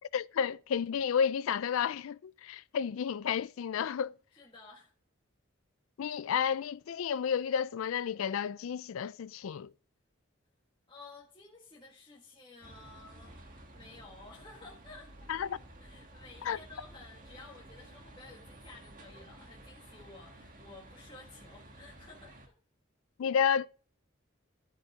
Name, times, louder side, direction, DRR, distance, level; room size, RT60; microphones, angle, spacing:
voice 1, 0.1-4.1 6.0-9.7 15.3-15.6 16.4-16.6 23.2-23.7, left 7 dB, 80° left, 0.4 m, -31 dB
voice 2, 4.3-4.9 10.9-15.5 15.8-22.6, left 3 dB, 25° left, 1.8 m, -53 dB
sound 1, 12.6-22.5, right 1 dB, 40° right, 1.6 m, -53 dB
12.0 x 7.9 x 3.6 m
head